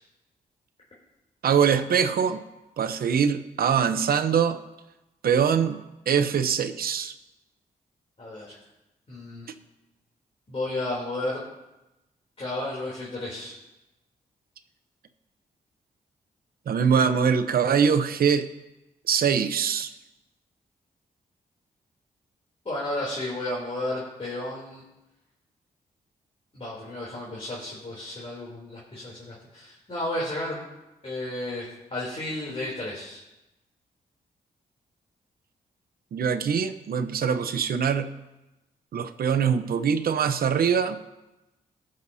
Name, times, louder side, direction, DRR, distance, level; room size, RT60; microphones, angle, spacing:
voice 1, 1.4-2.4 2.8-4.6 5.2-7.1 16.7-18.5 19.1-19.9 36.1-38.1 38.9-41.0, right 7 dB, 70° right, 10 dB, 0.8 m, -23 dB
voice 2, 8.2-8.5 9.1-9.5 10.5-11.4 12.4-13.5 22.6-24.8 26.5-30.6 31.0-33.2, left 1 dB, 40° left, -6 dB, 3.2 m, -33 dB
19.0 x 6.5 x 2.7 m, 0.99 s
cardioid pair, 55°, 16 cm